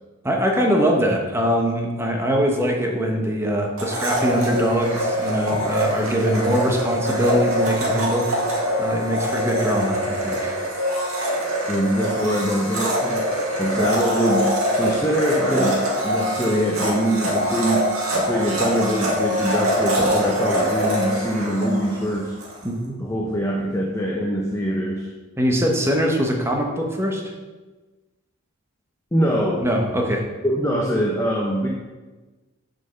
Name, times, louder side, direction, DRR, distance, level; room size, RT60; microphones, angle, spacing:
voice 1, 0.2-8.3 8.8-10.6 22.6-23.0 25.4-27.3 29.6-30.2, equal, 10° right, 1 dB, 1.2 m, -22 dB
Domestic sounds home sounds, 3.8-22.6, equal, 90° right, 2.3 m, -24 dB
voice 2, 11.7-13.3 13.6-22.3 23.0-25.1 29.1-29.6 30.4-31.7, equal, 15° left, -2 dB, 0.8 m, -23 dB
7.1 x 5.6 x 6.9 m, 1.2 s
head